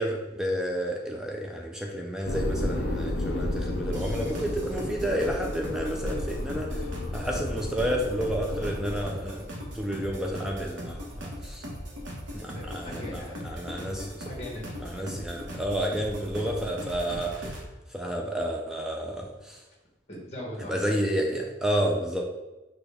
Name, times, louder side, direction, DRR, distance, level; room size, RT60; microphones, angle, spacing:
voice 1, 0.0-6.8 7.1-9.5 9.7-11.6 12.3-14.3 14.8-17.6 17.9-19.6 20.7-22.2, equal, 5° right, 0 dB, 0.3 m, -30 dB
sound 1, 2.3-9.0, left 1 dB, 65° left, 0.6 m, -32 dB
sound 2, 3.9-17.6, equal, 90° right, 0.9 m, -39 dB
voice 2, 12.5-13.4 13.9-14.0 14.3-15.1 20.1-20.9, left 1 dB, 35° left, -3 dB, 1.3 m, -40 dB
6.0 x 2.2 x 3.4 m, 1.1 s
head